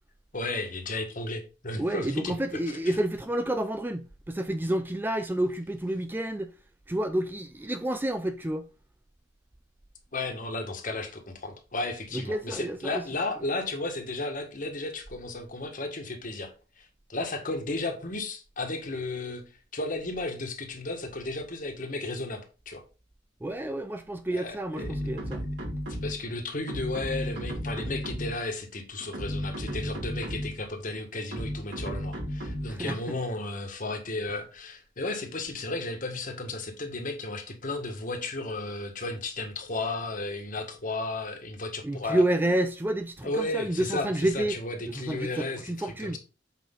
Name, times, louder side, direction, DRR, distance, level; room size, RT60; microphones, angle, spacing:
voice 1, 0.3-3.0 10.1-16.5 16.8-19.4 19.7-22.8 24.3-25.0 26.0-42.2 43.2-46.2, left 2 dB, 45° left, 1.7 m, -34 dB
voice 2, 1.8-6.5 6.9-8.7 12.1-13.0 23.4-25.4 32.7-33.2 41.8-44.6 44.9-46.2, right 1 dB, 10° right, 0.4 m, -29 dB
sound 1, 24.8-26.3 26.7-28.5 29.0-30.6 31.3-32.8, equal, 70° right, 4.7 m, -34 dB
7.8 x 5.2 x 3.9 m
head